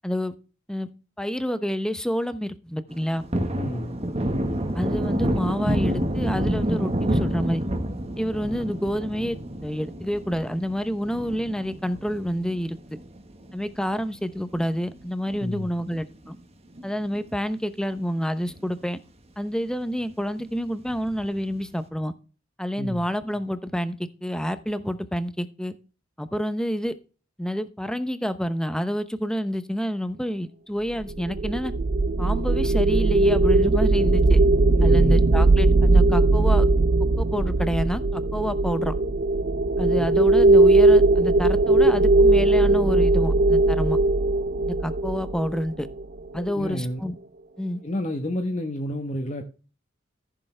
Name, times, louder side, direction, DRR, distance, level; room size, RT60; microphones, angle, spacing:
voice 1, 0.0-0.3 0.7-0.9 1.2-3.3 4.7-7.6 8.2-9.4 9.6-13.0 13.5-16.4 16.8-19.0 19.4-22.1 22.6-25.7 26.2-26.9 27.4-31.7 32.2-34.4 34.8-36.7 37.2-38.9 39.8-44.0 44.7-45.9 46.3-47.1 47.6-47.8, equal, 5° left, 0.8 m, -28 dB
Thunder, 2.9-13.6 14.0-14.1 14.5-16.0 16.3-16.4 16.8-17.6 18.0-18.1 18.4-18.5 20.9-21.4, right 1 dB, 30° right, 1.4 m, -28 dB
voice 2, 3.5-4.0 15.4-15.7 22.8-23.1 34.7-35.4 40.0-40.1 46.3-47.0 47.8-49.4, left 1 dB, 35° left, 1.2 m, -30 dB
sound 1, 31.0-46.2, right 2 dB, 50° right, 0.6 m, -19 dB
14.5 x 6.8 x 3.3 m
head